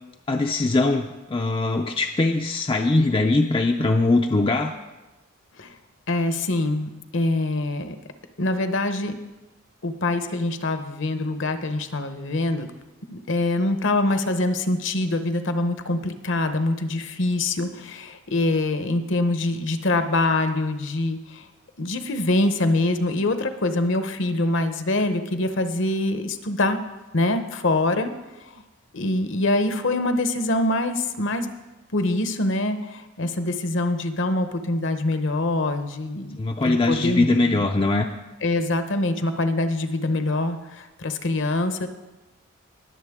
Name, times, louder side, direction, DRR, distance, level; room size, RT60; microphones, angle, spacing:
voice 1, 0.3-4.7 36.4-38.1, left 2 dB, 25° left, 3 dB, 0.4 m, -21 dB
voice 2, 6.1-8.0 8.4-9.1 9.8-12.7 13.1-21.5 21.8-26.8 27.1-28.1 28.5-28.6 28.9-31.5 31.9-37.6 38.4-41.9, left 2 dB, 55° left, 9 dB, 0.8 m, -24 dB
20.5 x 7.3 x 3.6 m, 1.1 s
head